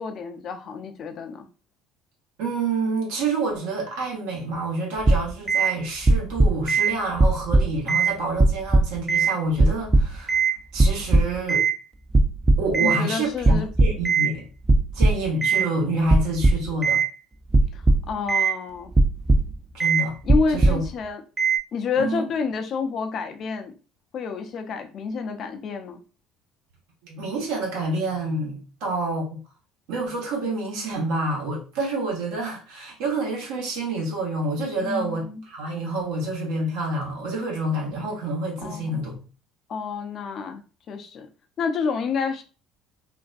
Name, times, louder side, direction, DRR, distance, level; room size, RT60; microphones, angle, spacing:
voice 1, 0.0-1.5 12.8-13.7 17.7-18.9 20.2-21.2 21.7-23.7 24.1-26.0 34.8-35.4 38.6-39.0 39.7-40.6 40.9-41.3 41.6-42.4, left 5 dB, 50° left, 0.5 m, -29 dB
voice 2, 2.4-10.4 10.7-11.6 12.6-14.5 14.9-17.0 19.7-20.2 20.5-20.8 22.0-22.3 27.0-29.4 29.9-39.2, right 2 dB, 75° right, 1.0 m, -28 dB
sound 1, 5.0-5.7 6.1-6.9 7.2-8.1 8.4-9.3 9.6-10.5 10.8-11.7 12.1-13.0 13.4-14.3 14.7-15.6 16.1-17.1 17.5-18.5 18.9-19.5 19.8-20.0 20.3-20.9 21.4-21.6, right 2 dB, 25° right, 0.4 m, -18 dB
2.5 x 2.2 x 2.5 m
hypercardioid pair, 65°, 0 cm